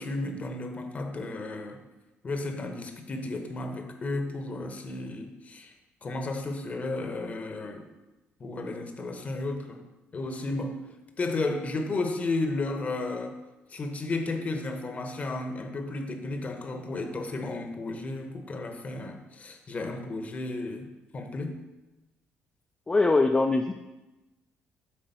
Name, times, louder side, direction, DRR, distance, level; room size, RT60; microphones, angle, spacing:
voice 1, 0.0-1.8 2.2-5.7 6.0-7.9 8.4-9.9 10.1-10.8 11.2-13.4 13.7-21.6, left 2 dB, 35° left, 6 dB, 0.9 m, -33 dB
voice 2, 22.9-23.7, left 3 dB, 20° left, 5 dB, 0.3 m, -22 dB
7.8 x 3.6 x 5.5 m, 1.0 s
cardioid pair, 115°, 4 cm